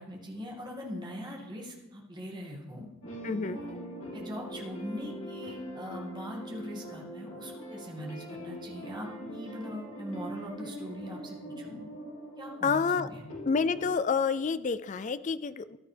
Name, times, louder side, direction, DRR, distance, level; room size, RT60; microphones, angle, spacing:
voice 1, 0.0-2.9 3.5-3.8 4.1-11.9 12.4-13.2, equal, 20° right, -2 dB, 2.0 m, -41 dB
sound 1, 3.0-13.9, equal, 70° left, 2.5 m, -42 dB
voice 2, 3.2-3.6 12.6-13.1 13.5-15.8, left 5 dB, 35° left, 15 dB, 0.3 m, -28 dB
14.5 x 11.0 x 3.4 m, 1.1 s
head